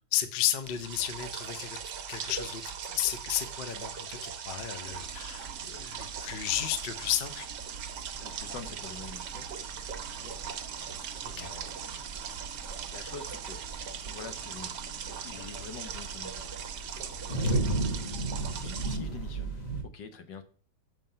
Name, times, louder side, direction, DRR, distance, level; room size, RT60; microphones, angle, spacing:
voice 1, 0.1-1.8 2.1-7.5 11.2-11.5 17.4-17.6, left 12 dB, 50° left, 10 dB, 0.7 m, -33 dB
sound 1, 0.6-19.0, right 7 dB, 70° right, 1.4 m, -40 dB
sound 2, 4.8-19.3, right 5 dB, 50° right, 1.2 m, -50 dB
voice 2, 7.8-9.5 10.0-10.4 11.3-12.2 12.9-13.6 14.0-16.7 17.6-18.2 18.5-20.4, left 5 dB, 75° left, 8 dB, 1.7 m, -47 dB
sound 3, 8.1-19.8, right 2 dB, 25° left, 1.2 m, -36 dB
7.1 x 5.8 x 5.6 m, 0.42 s
omnidirectional pair, 1.9 m